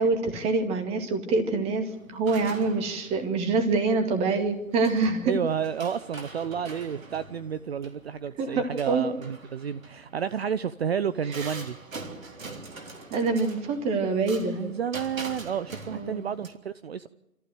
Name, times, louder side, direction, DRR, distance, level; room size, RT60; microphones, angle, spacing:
voice 1, 0.0-5.3 8.4-9.1 11.4-11.5 13.1-14.6 15.9-16.2, right 3 dB, 15° right, 6 dB, 2.2 m, -26 dB
sound 1, 1.9-16.5, right 3 dB, 75° right, 3.8 m, -44 dB
voice 2, 5.2-11.8 14.5-17.1, right 8 dB, 50° right, 15 dB, 0.8 m, -31 dB
26.5 x 15.0 x 7.9 m, 0.99 s
figure-of-eight pair, 145°, 41 cm